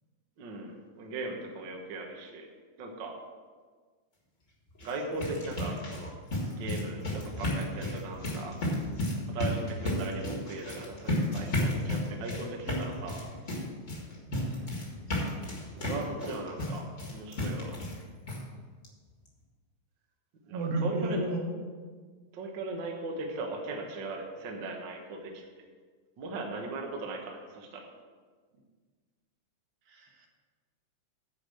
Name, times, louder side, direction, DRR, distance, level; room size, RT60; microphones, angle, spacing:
voice 1, 0.4-2.5 2.8-3.1 4.8-6.1 6.5-8.5 9.3-13.2 15.7-17.8 20.4-21.2 22.3-25.6 26.2-27.9, right 3 dB, 55° right, 1 dB, 1.4 m, -38 dB
sound 1, 4.7-18.0 18.3-18.4 18.8-18.9 19.3-19.4, left 1 dB, 30° left, 1.7 m, -33 dB
voice 2, 14.3-14.8 20.5-21.6 29.9-30.3, right 1 dB, 75° right, 1 dB, 2.7 m, -33 dB
9.9 x 4.9 x 7.6 m, 1.5 s
omnidirectional pair, 3.5 m